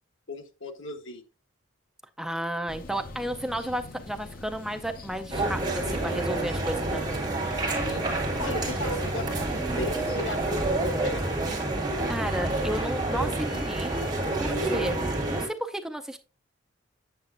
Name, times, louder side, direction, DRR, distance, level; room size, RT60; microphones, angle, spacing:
voice 1, 0.3-1.2 7.8-11.2, left 2 dB, 75° left, 5 dB, 1.1 m, -36 dB
voice 2, 2.2-7.0 12.1-13.9 14.4-15.0 15.3-16.2, right 1 dB, ahead, 6 dB, 0.4 m, -32 dB
sound 1, 2.7-10.8, left 2 dB, 45° left, 0.7 m, -43 dB
sound 2, 5.3-15.5, right 2 dB, 20° right, 2.2 m, -28 dB
8.0 x 6.7 x 2.5 m, 0.31 s
head